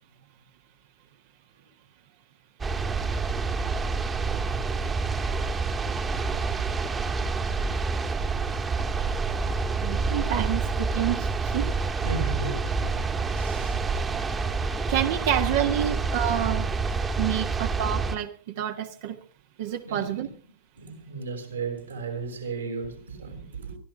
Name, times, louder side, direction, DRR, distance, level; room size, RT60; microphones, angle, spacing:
sound 1, 2.6-18.1, right 4 dB, 20° right, 1.6 m, -28 dB
voice 1, 9.8-11.7 14.9-16.7 17.2-19.2 19.6-20.3, right 11 dB, 50° right, 1.4 m, -28 dB
voice 2, 12.0-13.8 19.8-20.3 20.8-23.8, right 4 dB, 75° right, 5.5 m, -35 dB
24.5 x 14.0 x 3.5 m
figure-of-eight pair, 90°, 0 cm